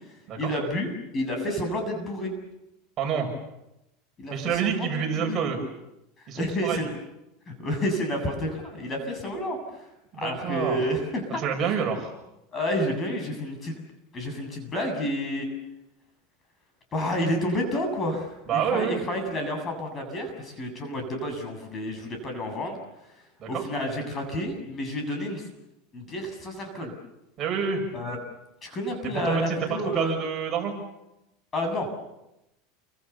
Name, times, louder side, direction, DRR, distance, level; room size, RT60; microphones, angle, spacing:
voice 1, 0.4-0.9 1.1-2.3 4.2-4.3 4.6-5.4 6.4-6.9 7.5-9.6 10.2-11.4 12.5-13.8 14.1-15.5 16.9-22.8 23.5-25.5 25.9-26.9 27.9-28.2 28.6-30.2 31.5-31.9, left 1 dB, 25° left, 5 dB, 7.4 m, -30 dB
voice 2, 3.0-3.3 4.3-5.6 6.3-6.9 10.1-10.8 11.4-12.1 18.5-19.0 23.4-23.6 27.4-27.8 29.0-30.7, right 7 dB, 35° right, 2 dB, 6.6 m, -28 dB
29.5 x 25.0 x 7.0 m, 0.90 s
supercardioid pair, 135°, 0 cm